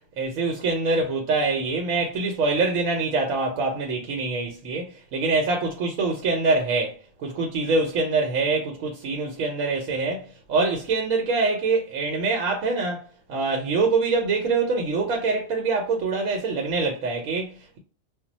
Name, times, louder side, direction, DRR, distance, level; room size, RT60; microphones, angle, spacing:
voice 1, 0.2-17.8, right 3 dB, 85° right, 1.0 m, -25 dB
2.2 x 2.1 x 3.8 m
omnidirectional pair, 1.4 m